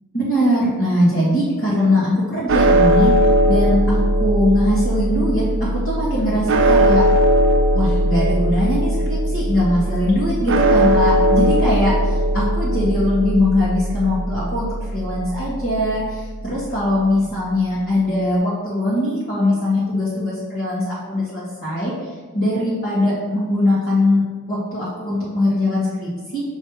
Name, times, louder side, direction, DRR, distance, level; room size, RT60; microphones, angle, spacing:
voice 1, 0.1-3.1 3.5-7.0 7.7-14.7 14.9-21.9 22.3-24.2 24.5-26.4, left 1 dB, 40° left, -9 dB, 1.6 m, -21 dB
sound 1, 2.5-16.7, right 1 dB, 55° right, 0.4 m, -19 dB
6.4 x 3.2 x 4.7 m, 1.4 s
head